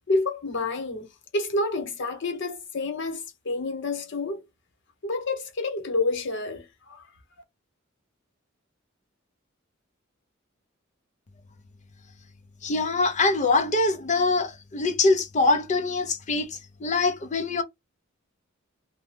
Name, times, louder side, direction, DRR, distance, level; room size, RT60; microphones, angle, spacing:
voice 1, 0.1-1.1 1.3-4.4 5.0-7.1, left 2 dB, 65° left, 0.9 m, -28 dB
voice 2, 12.6-17.6, left 3 dB, 35° left, 0.5 m, -24 dB
2.7 x 2.2 x 3.2 m
head